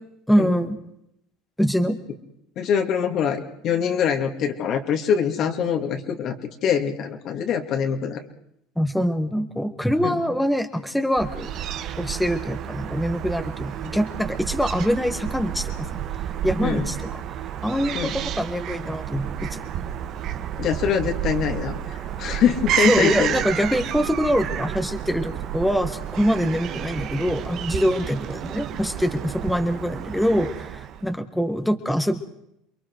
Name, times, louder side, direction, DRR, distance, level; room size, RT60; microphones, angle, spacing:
voice 1, 0.3-0.8 1.6-2.0 8.8-11.5 12.0-15.9 16.4-17.0 17.6-19.7 22.8-32.2, equal, ahead, 6 dB, 1.6 m, -24 dB
voice 2, 2.6-8.2 10.0-10.2 16.6-16.9 17.9-18.2 20.6-23.4, left 7 dB, 50° left, 4 dB, 2.4 m, -24 dB
Fowl / Gull seagull, 11.2-31.1, right 10 dB, 50° right, 1.4 m, -30 dB
28.5 x 22.5 x 4.7 m, 0.77 s
supercardioid pair, 110°, 0 cm